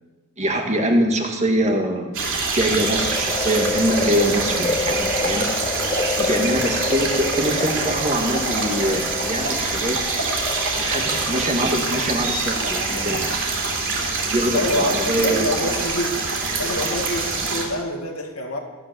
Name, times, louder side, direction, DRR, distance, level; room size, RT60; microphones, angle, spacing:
voice 1, 0.4-2.2 2.5-5.5 6.2-10.0 10.8-13.4 14.3-15.5, right 1 dB, 30° right, 3 dB, 1.8 m, -23 dB
sound 1, 2.1-17.6, right 3 dB, 60° right, 3.3 m, -25 dB
sound 2, 2.9-13.1 13.5-13.6, left 3 dB, 20° left, 0.6 m, -29 dB
voice 2, 14.5-16.2 16.6-18.6, left 1 dB, 70° left, 0 dB, 2.1 m, -26 dB
14.5 x 10.0 x 6.9 m, 1.3 s
head